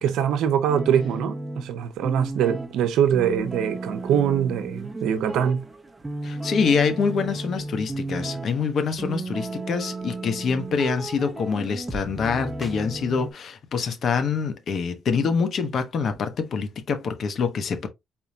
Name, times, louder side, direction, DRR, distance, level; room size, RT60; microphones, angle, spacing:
voice 1, 0.0-5.6, right 9 dB, 85° right, 0.7 m, -23 dB
sound 1, 0.7-13.3, right 2 dB, 15° right, 0.8 m, -34 dB
voice 2, 6.2-17.9, left 5 dB, 60° left, 1.1 m, -25 dB
4.4 x 3.6 x 2.7 m
cardioid pair, 90°, 0 cm